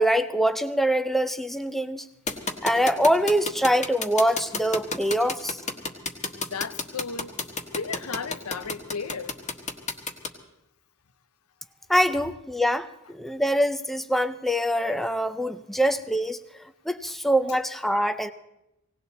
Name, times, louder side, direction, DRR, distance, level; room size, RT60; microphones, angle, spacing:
voice 1, 0.0-2.0 2.6-5.6 11.9-16.4 16.9-18.3, equal, ahead, 0.4 m, -24 dB
sound 1, 2.3-10.3, left 3 dB, 35° left, 1.3 m, -30 dB
voice 2, 6.4-7.4 7.7-9.4, left 5 dB, 85° left, 0.7 m, -34 dB
18.5 x 18.0 x 4.1 m
head